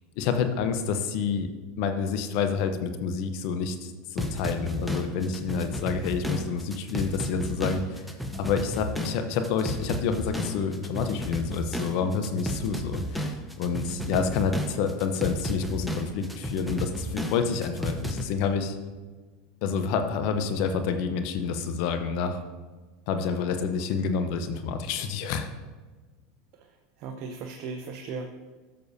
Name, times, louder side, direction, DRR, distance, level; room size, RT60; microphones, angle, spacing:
voice 1, 0.2-1.5 1.8-8.1 8.4-18.7 19.6-22.4 23.1-25.5, left 6 dB, 60° left, 8 dB, 0.8 m, -28 dB
sound 1, 4.2-18.2, equal, ahead, 0.9 m, -33 dB
voice 2, 27.0-28.3, right 4 dB, 55° right, 4 dB, 0.7 m, -36 dB
13.0 x 6.7 x 2.7 m, 1.3 s
hypercardioid pair, 105°, 0 cm